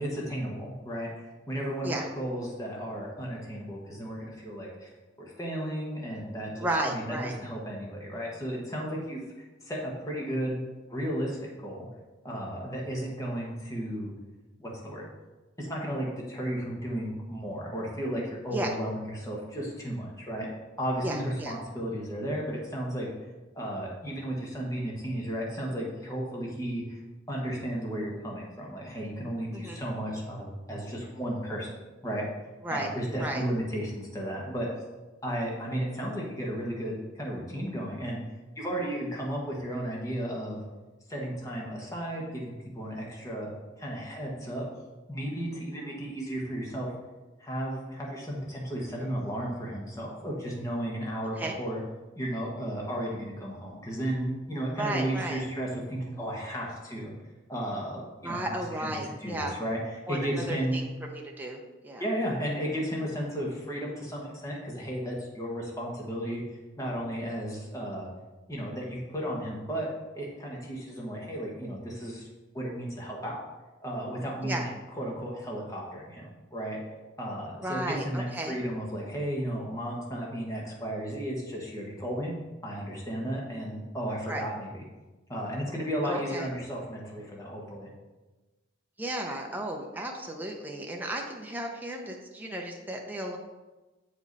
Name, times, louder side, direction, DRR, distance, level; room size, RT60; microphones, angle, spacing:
voice 1, 0.0-4.9 5.2-9.2 9.6-10.6 10.9-11.9 12.2-14.1 14.6-15.1 15.6-20.5 20.8-23.1 23.5-27.0 27.3-31.7 32.0-32.3 32.7-34.7 35.2-38.2 38.6-40.6 41.1-43.5 43.8-44.6 45.1-46.9 47.4-51.8 52.2-57.1 57.5-58.9 59.2-59.8 60.1-60.8 62.0-66.4 66.8-68.1 68.5-69.9 70.1-72.3 72.5-73.4 73.8-76.8 77.2-82.3 82.6-84.8 85.3-87.9, equal, 20° left, -3 dB, 1.4 m, -34 dB
voice 2, 6.6-7.3 18.5-18.7 21.0-21.5 29.5-29.8 32.6-32.9 33.2-33.4 51.4-51.6 54.8-55.4 58.2-59.6 60.1-62.0 74.4-74.7 77.6-78.6 84.3-84.4 86.0-86.5 89.0-93.4, right 1 dB, 10° right, 0 dB, 0.7 m, -34 dB
7.7 x 5.2 x 4.1 m, 1.2 s
head